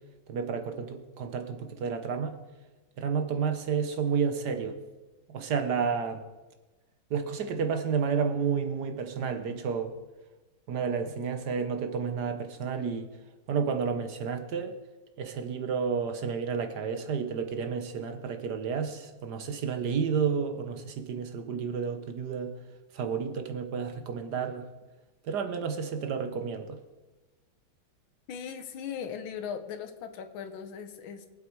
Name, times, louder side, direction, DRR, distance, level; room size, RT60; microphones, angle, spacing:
voice 1, 0.3-2.3 3.0-4.8 5.3-6.2 7.1-9.9 10.7-13.1 13.5-14.7 15.2-22.5 22.9-24.7 25.2-26.8, right 6 dB, 60° right, 7 dB, 1.4 m, -31 dB
voice 2, 28.3-31.3, left 7 dB, 80° left, 8 dB, 1.8 m, -38 dB
23.0 x 7.7 x 4.6 m, 1.2 s
omnidirectional pair, 2.2 m